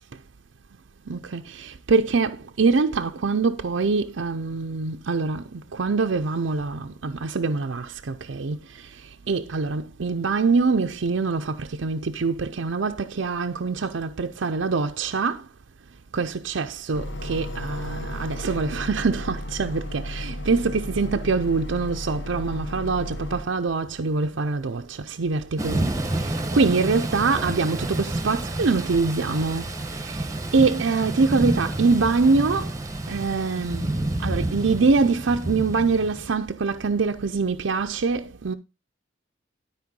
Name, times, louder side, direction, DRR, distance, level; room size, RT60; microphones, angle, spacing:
voice 1, 1.1-15.5 16.1-32.8 33.1-38.5, right 4 dB, 70° right, 0.6 m, -24 dB
sound 1, 16.9-23.4, left 1 dB, 65° left, 1.2 m, -34 dB
Thunder / Rain, 25.6-36.3, right 1 dB, 15° right, 1.0 m, -29 dB
12.5 x 4.5 x 5.3 m
head